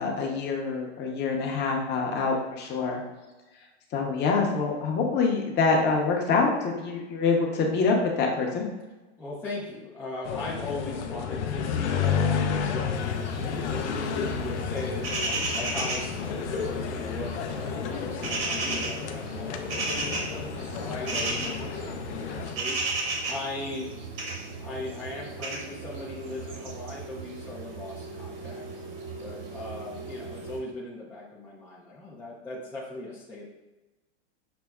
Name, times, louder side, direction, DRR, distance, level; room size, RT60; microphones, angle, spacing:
voice 1, 0.0-3.0 3.9-8.7, left 4 dB, 30° left, 0 dB, 0.7 m, -25 dB
voice 2, 9.2-15.1 15.5-20.5 20.7-22.8 23.3-23.9 24.6-28.6 29.2-33.5, left 2 dB, 5° left, -7 dB, 0.3 m, -38 dB
sound 1, 10.2-22.6, left 7 dB, 80° left, 0.5 m, -31 dB
sound 2, 12.9-30.6, right 3 dB, 55° right, 1.1 m, -35 dB
5.9 x 2.0 x 2.2 m, 1.1 s
hypercardioid pair, 115°, 34 cm